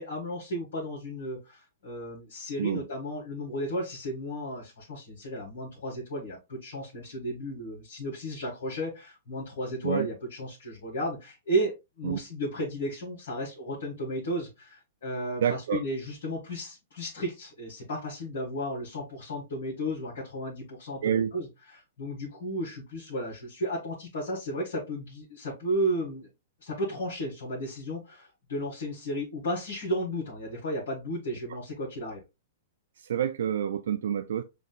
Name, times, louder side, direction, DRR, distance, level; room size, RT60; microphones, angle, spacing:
voice 1, 0.0-26.3 26.6-32.2, equal, 60° left, 1.9 m, -34 dB
voice 2, 15.4-15.8 21.0-21.3 33.0-34.4, right 9 dB, 60° right, 0.4 m, -28 dB
7.1 x 3.1 x 2.3 m
figure-of-eight pair, 105°, 0 cm